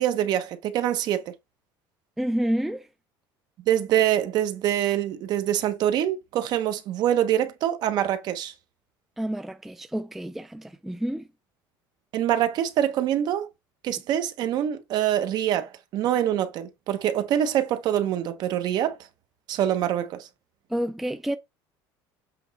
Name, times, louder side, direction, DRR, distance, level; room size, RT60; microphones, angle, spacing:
voice 1, 0.0-1.3 3.7-8.5 12.1-13.5 13.8-19.0 19.5-20.3, right 11 dB, 50° right, 1.1 m, -25 dB
voice 2, 2.2-2.9 9.2-11.3 20.7-21.4, right 1 dB, 5° right, 0.4 m, -29 dB
7.9 x 3.5 x 4.1 m
cardioid pair, 160°, 9 cm